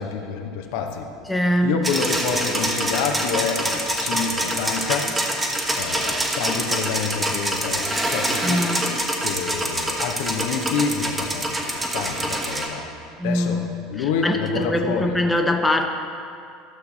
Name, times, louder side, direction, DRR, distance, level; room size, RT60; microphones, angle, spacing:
voice 1, 0.0-1.1 1.6-5.2 5.8-8.7 9.2-12.9 13.2-13.6 13.9-15.2, left 6 dB, 60° left, 3 dB, 0.8 m, -28 dB
voice 2, 1.3-1.8 5.9-6.2 8.4-8.8 13.2-13.7 14.2-15.9, left 1 dB, 10° left, 3 dB, 0.8 m, -22 dB
sound 1, 1.8-12.7, right 1 dB, 15° right, 1.2 m, -25 dB
12.5 x 6.9 x 4.0 m, 2.4 s
figure-of-eight pair, 70°, 0 cm